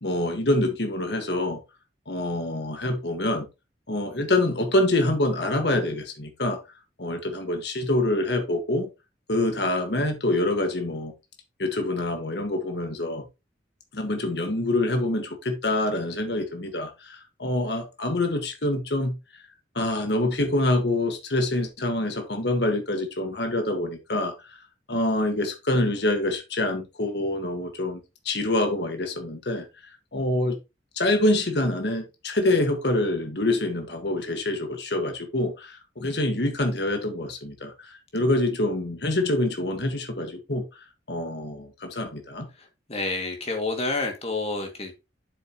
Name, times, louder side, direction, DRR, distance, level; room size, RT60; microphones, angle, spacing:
voice 1, 0.0-1.6 2.1-3.5 3.9-6.6 7.0-8.9 9.3-11.1 11.6-13.2 13.9-19.1 19.8-24.6 24.9-28.0 28.3-30.6 31.0-42.5, left 1 dB, 65° left, 1.6 m, -26 dB
voice 2, 42.9-45.1, left 3 dB, 35° left, 2.1 m, -29 dB
8.1 x 6.9 x 2.9 m
head